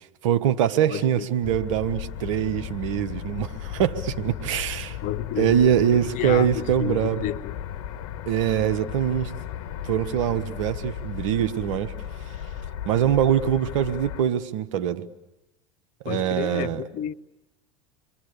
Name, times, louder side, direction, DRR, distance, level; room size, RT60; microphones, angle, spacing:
voice 1, 0.2-5.0 5.4-7.2 8.3-9.3 9.8-11.9 12.8-15.0 16.0-16.8, right 9 dB, 75° right, 1.4 m, -23 dB
voice 2, 0.9-1.3 5.0-5.6 5.9-7.5 16.0-17.1, left 12 dB, 50° left, 1.0 m, -31 dB
sound 1, 1.4-14.2, left 10 dB, 70° left, 1.7 m, -35 dB
29.0 x 23.5 x 6.8 m
hypercardioid pair, 85°, 17 cm